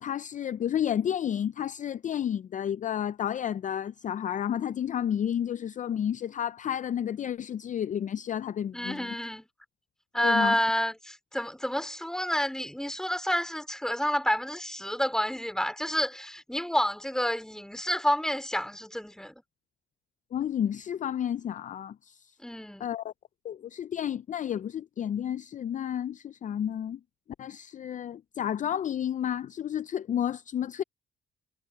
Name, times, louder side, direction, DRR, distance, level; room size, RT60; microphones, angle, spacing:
voice 1, 0.0-9.0 10.2-10.6 20.3-22.3 22.8-23.1 23.4-27.0 27.4-30.8, left 9 dB, 40° left, 0.4 m, -31 dB
voice 2, 8.7-9.5 10.1-19.3 22.4-22.9, equal, 5° left, 3.0 m, -29 dB
cardioid pair, 90°, 20 cm